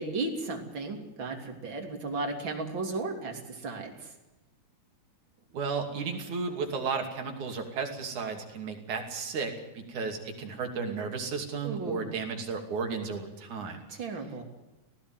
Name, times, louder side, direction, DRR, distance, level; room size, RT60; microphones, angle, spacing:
voice 1, 0.0-4.1 11.6-12.2 13.9-14.4, right 3 dB, 30° right, 3 dB, 3.6 m, -35 dB
voice 2, 5.5-13.8, right 5 dB, 55° right, 4 dB, 3.9 m, -34 dB
19.0 x 16.5 x 9.6 m, 1.0 s
omnidirectional pair, 4.5 m